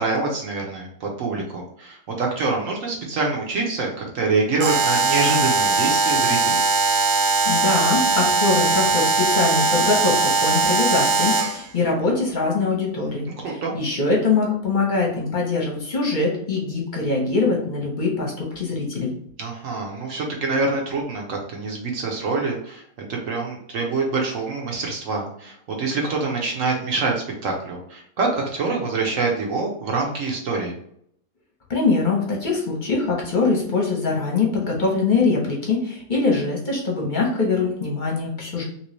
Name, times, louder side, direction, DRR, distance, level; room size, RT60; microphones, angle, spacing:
voice 1, 0.0-6.6 13.4-13.7 19.4-30.8, right 3 dB, 60° right, 0 dB, 1.0 m, -25 dB
Alarm, 4.6-11.6, right 3 dB, 80° right, 1.2 m, -20 dB
voice 2, 7.4-13.3 13.7-19.1 31.7-38.6, left 4 dB, 40° left, -2 dB, 0.7 m, -23 dB
3.0 x 2.9 x 3.0 m, 0.67 s
omnidirectional pair, 1.7 m